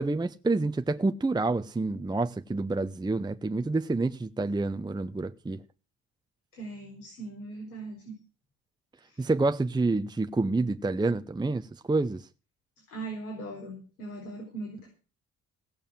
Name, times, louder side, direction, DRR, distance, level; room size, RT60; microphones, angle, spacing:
voice 1, 0.0-5.6 9.2-12.3, right 3 dB, 10° right, 0.8 m, -28 dB
voice 2, 6.5-8.2 9.0-9.2 12.9-14.9, right 2 dB, 85° left, 4.2 m, -40 dB
17.0 x 6.9 x 7.5 m
figure-of-eight pair, 45°, 43 cm